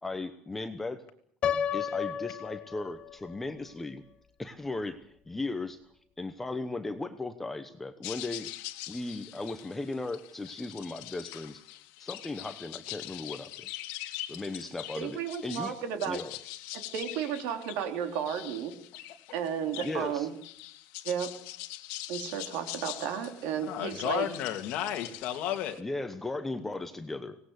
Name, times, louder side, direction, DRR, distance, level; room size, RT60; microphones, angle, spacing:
voice 1, 0.0-1.0 1.7-4.0 4.4-5.8 6.2-8.5 8.9-11.6 12.0-13.7 14.3-15.7 16.1-16.3 19.8-20.3 25.8-27.4, left 2 dB, 10° left, 8 dB, 1.0 m, -37 dB
Piano, 1.4-3.4, left 8 dB, 35° left, 0.9 m, -32 dB
sound 1, 8.0-25.8, left 16 dB, 85° left, 1.8 m, -43 dB
voice 2, 15.0-16.2 16.7-18.7 19.3-20.3 21.0-21.3 22.1-24.3, right 8 dB, 70° right, 6 dB, 3.5 m, -33 dB
voice 3, 23.7-25.8, left 11 dB, 50° left, 5 dB, 2.7 m, -32 dB
24.5 x 19.0 x 8.2 m, 0.67 s
cardioid pair, 175°, 3 cm